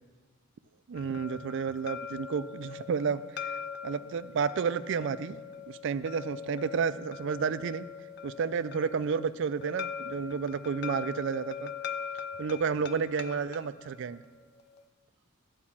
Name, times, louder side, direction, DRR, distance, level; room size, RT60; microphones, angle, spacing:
sound 1, 0.9-14.8, left 7 dB, 50° left, 0.4 m, -42 dB
voice 1, 0.9-5.4 5.7-7.9 8.2-11.7 12.4-14.2, right 6 dB, 60° right, 14 dB, 0.4 m, -31 dB
11.5 x 4.9 x 7.3 m, 1.4 s
head